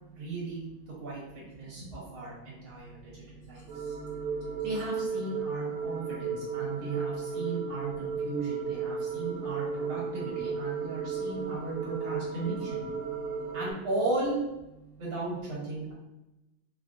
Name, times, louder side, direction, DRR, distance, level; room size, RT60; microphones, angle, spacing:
voice 1, 0.1-0.7 1.0-3.7 4.6-12.8 13.5-14.4 15.0-15.9, right 3 dB, 70° right, -7 dB, 2.1 m, -36 dB
voice 2, 1.6-4.7 7.4-7.7 8.2-8.3 8.9-9.5 11.2-11.9 13.0-13.6 14.8-15.0, right 5 dB, 50° right, -11 dB, 1.3 m, -52 dB
sound 1, 3.7-13.7, right 6 dB, 90° right, 1.6 m, -34 dB
4.7 x 2.5 x 2.5 m, 0.94 s
omnidirectional pair, 2.3 m